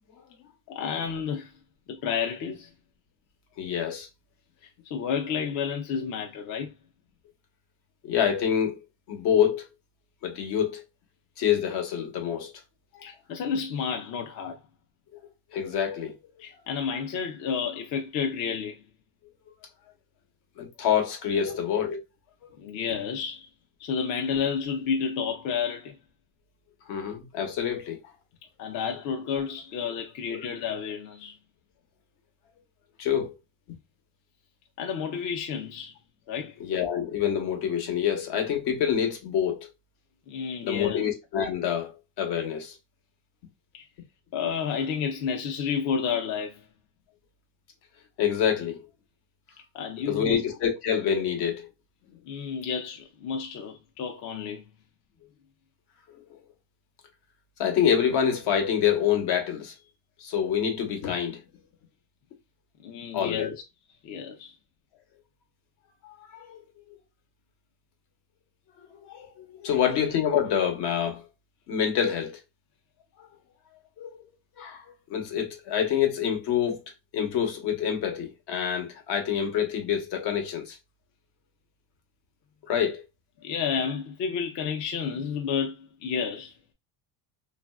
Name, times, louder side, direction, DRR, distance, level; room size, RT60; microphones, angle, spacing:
voice 1, 0.7-1.5 1.9-2.7 4.6-6.7 13.0-14.6 16.4-18.8 21.5-21.6 22.6-23.5 23.8-26.0 28.6-31.3 34.8-35.9 36.3-36.7 40.3-41.0 43.7-43.8 44.3-46.6 49.7-50.4 52.3-54.6 62.8-63.5 64.0-64.6 83.4-86.5, left 6 dB, 45° left, 0.5 m, -31 dB
voice 2, 3.6-4.1 8.0-8.8 9.1-9.7 10.2-10.8 11.4-12.5 12.9-13.0 15.1-15.2 15.5-16.2 20.6-22.0 26.9-28.0 28.7-28.8 30.3-30.4 33.0-33.4 36.6-39.7 40.6-42.7 48.2-48.8 50.1-51.7 56.3-56.4 57.6-59.7 60.2-61.4 63.1-63.6 66.0-66.6 66.9-67.0 68.9-71.2 71.7-72.4 73.2-73.3 74.0-74.2 74.6-76.8 77.1-80.8 82.6-83.0, left 8 dB, 65° left, 1.0 m, -27 dB
3.1 x 2.4 x 2.3 m
cardioid pair, 140°, 44 cm